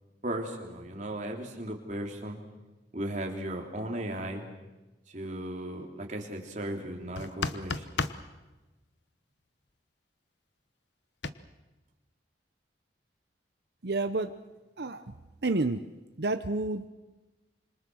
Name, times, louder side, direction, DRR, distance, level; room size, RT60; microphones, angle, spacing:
voice 1, 0.2-2.4 2.9-4.4 5.1-7.9, right 1 dB, 40° right, 2 dB, 3.4 m, -36 dB
sound 1, 7.2-8.2 11.2-11.3, left 4 dB, 75° left, 1.1 m, -32 dB
voice 2, 13.8-14.3 14.8-15.1 15.4-15.8 16.2-16.9, right 2 dB, 60° right, 8 dB, 0.8 m, -29 dB
26.5 x 25.0 x 6.4 m, 1.1 s
head